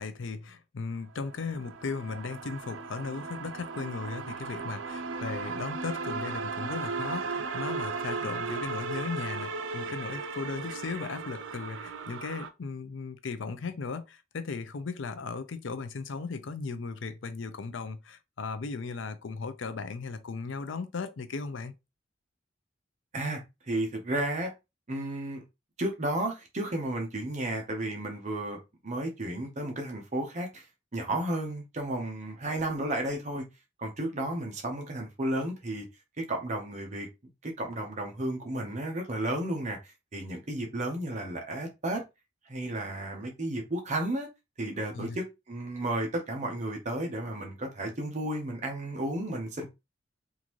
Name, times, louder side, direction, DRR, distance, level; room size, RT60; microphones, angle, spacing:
voice 1, 0.0-21.7 44.9-45.2, left 4 dB, 80° left, 0.5 m, -37 dB
sound 1, 1.2-12.5, right 4 dB, 85° right, 0.5 m, -36 dB
voice 2, 23.7-24.5 24.9-25.4 25.8-28.6 28.8-30.6 30.9-33.4 33.8-35.8 36.2-37.1 37.4-42.0 42.5-44.3 44.6-49.7, right 1 dB, 40° right, 0.9 m, -33 dB
3.7 x 2.6 x 3.0 m
head